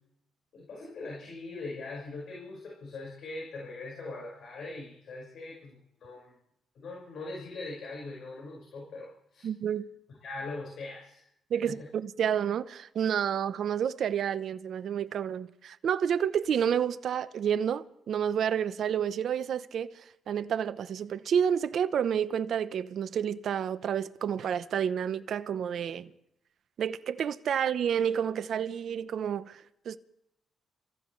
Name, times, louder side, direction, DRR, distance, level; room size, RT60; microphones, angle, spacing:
voice 1, 0.5-5.7 6.0-6.3 6.8-9.5 10.2-11.2 11.6-11.8, left 3 dB, 65° left, 5.5 m, -41 dB
voice 2, 9.4-9.9 11.5-26.1 26.8-30.0, right 8 dB, 65° right, 0.9 m, -30 dB
29.0 x 15.0 x 3.3 m
cardioid pair, 90°, 0 cm